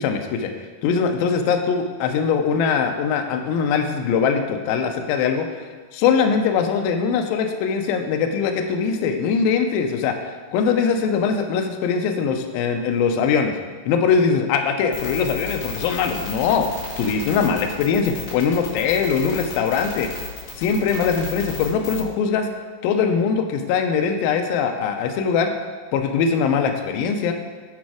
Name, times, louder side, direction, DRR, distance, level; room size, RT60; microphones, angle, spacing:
voice 1, 0.0-0.5 0.8-5.5 5.9-10.2 10.5-13.5 13.9-16.7 17.0-20.1 20.6-22.5 22.8-25.5 25.9-27.3, left 6 dB, 80° left, 5 dB, 2.3 m, -21 dB
sound 1, 14.9-22.0, left 4 dB, 40° left, 2.4 m, -33 dB
10.5 x 4.3 x 4.8 m, 1.5 s
omnidirectional pair, 4.5 m